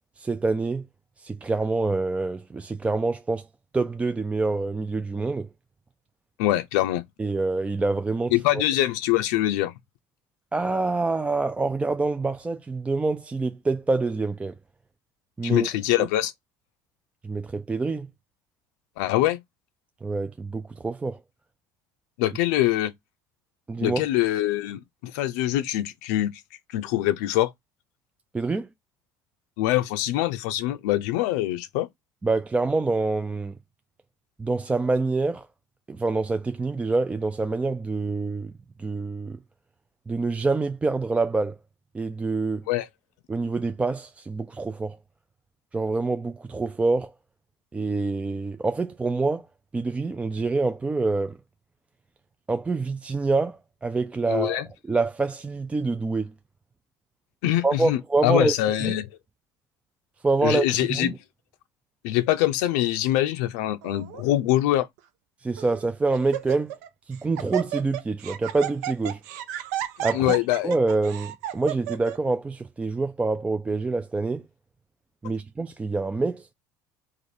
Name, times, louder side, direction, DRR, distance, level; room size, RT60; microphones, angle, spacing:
voice 1, 0.2-0.9 1.2-3.5 3.7-5.5 7.2-8.3 10.5-14.6 15.4-15.7 16.0-16.1 17.2-18.1 20.0-21.2 23.7-24.0 28.3-28.7 32.2-33.6 34.4-35.5 35.9-38.5 38.8-39.4 40.1-41.6 41.9-42.7 43.3-45.0 45.7-47.1 47.7-49.5 49.7-51.4 52.5-56.3 57.6-58.5 58.8-58.9 60.2-61.2 65.4-66.7 67.1-69.2 70.0-70.4 70.6-74.4 75.2-76.5, right 3 dB, 15° right, 0.3 m, -26 dB
voice 2, 6.4-7.0 8.3-9.7 15.4-16.3 19.0-19.4 22.2-22.9 23.8-26.4 26.7-27.5 29.6-31.9 42.7-42.9 54.3-54.7 57.4-59.1 60.4-61.1 62.0-64.9 70.1-70.7, left 14 dB, 80° left, 0.4 m, -24 dB
Laughter, 63.8-64.2 65.0-65.1 65.6-65.8 66.1-66.9 67.1-72.2, right 12 dB, 80° right, 0.5 m, -32 dB
3.2 x 2.5 x 4.1 m
supercardioid pair, 90°, 9 cm